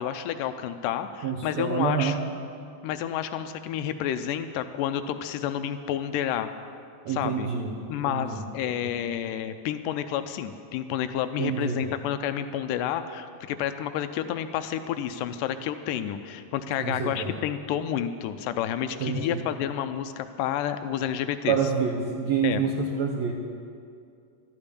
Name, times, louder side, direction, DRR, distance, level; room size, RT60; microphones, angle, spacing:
voice 1, 0.0-2.2 2.8-6.5 7.1-7.5 7.9-21.6 22.4-22.6, left 10 dB, 80° left, 10 dB, 2.0 m, -30 dB
voice 2, 1.2-2.2 7.0-7.8 8.1-8.9 11.4-11.9 16.8-17.3 19.0-19.4 21.5-23.3, right 6 dB, 70° right, 0 dB, 1.7 m, -28 dB
13.0 x 8.7 x 9.9 m, 2.3 s
omnidirectional pair, 4.3 m